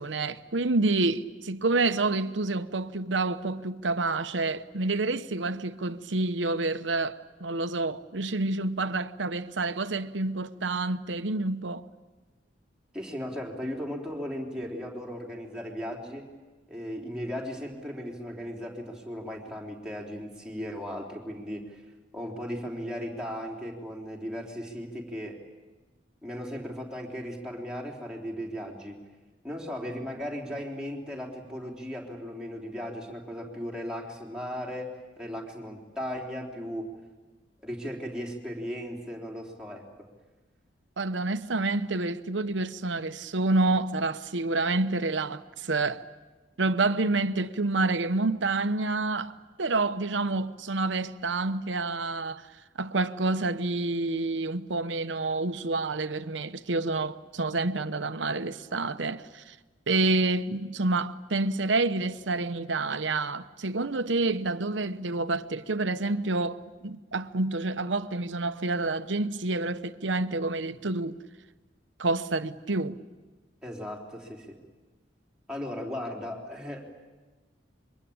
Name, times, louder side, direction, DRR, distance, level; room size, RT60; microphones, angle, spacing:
voice 1, 0.0-11.8 41.0-46.0 46.6-52.5 52.8-59.5 59.9-71.2 72.0-73.0, right 2 dB, 85° right, 1.0 m, -28 dB
voice 2, 12.9-16.3 16.7-21.8 22.1-25.4 26.2-29.1 29.4-37.0 37.6-39.8 73.6-74.6 75.5-76.8, equal, 5° right, 3.6 m, -37 dB
26.5 x 23.5 x 8.8 m
head